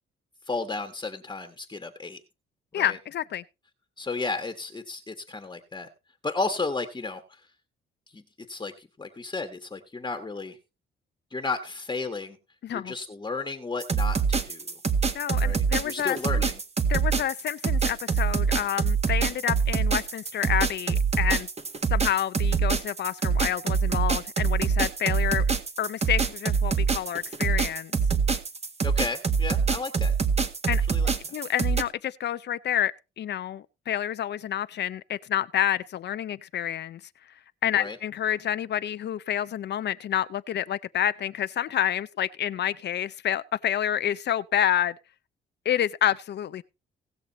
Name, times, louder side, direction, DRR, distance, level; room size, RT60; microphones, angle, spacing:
voice 1, 0.4-2.2 2.7-3.0 4.0-5.9 6.2-7.5 8.1-8.2 8.5-10.6 11.3-12.4 12.7-14.7 15.4-16.5 28.8-30.1 30.9-31.3 37.7-38.0, left 3 dB, 20° left, 1.5 m, -33 dB
voice 2, 2.7-3.4 12.6-12.9 15.1-16.4 16.9-21.5 21.9-25.5 25.8-27.9 30.7-30.8 31.3-37.0 37.6-44.9 45.7-46.6, left 10 dB, 60° left, 0.6 m, -28 dB
sound 1, 13.8-31.8, right 5 dB, 30° right, 1.7 m, -25 dB
17.5 x 6.7 x 4.1 m
cardioid pair, 90°, 20 cm